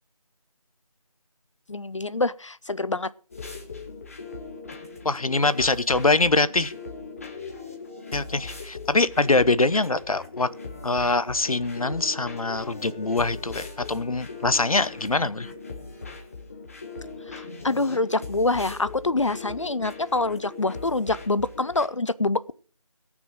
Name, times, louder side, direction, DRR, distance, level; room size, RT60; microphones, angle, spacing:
voice 1, 1.7-3.1 17.3-22.4, left 2 dB, 55° left, 17 dB, 0.5 m, -26 dB
sound 1, 3.3-21.9, left 4 dB, 25° left, 1.5 m, -40 dB
voice 2, 5.0-6.7 8.1-10.5 10.8-15.5, left 3 dB, 70° left, 16 dB, 0.9 m, -23 dB
Wind instrument woodwind instrument, 10.7-15.3, right 2 dB, 10° right, 1.5 m, -50 dB
18.0 x 6.1 x 6.0 m, 0.43 s
figure-of-eight pair, 170°, 19 cm